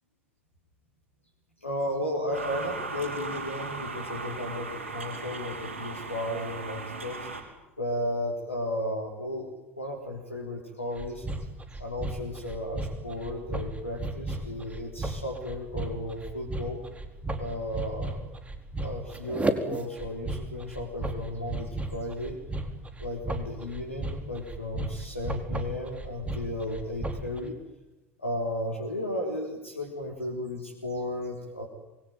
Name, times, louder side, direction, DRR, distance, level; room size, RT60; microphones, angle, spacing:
voice 1, 1.6-7.3 7.8-9.5 9.8-11.3 11.7-16.8 17.4-18.2 18.8-22.4 23.0-27.6 28.2-31.7, left 1 dB, 90° left, 0 dB, 4.1 m, -34 dB
sound 1, 2.3-7.4, right 3 dB, 80° right, 5.2 m, -37 dB
sound 2, 11.0-27.4, right 2 dB, 20° right, 4.4 m, -34 dB
28.0 x 22.5 x 9.3 m, 1.0 s
figure-of-eight pair, 70°, 7 cm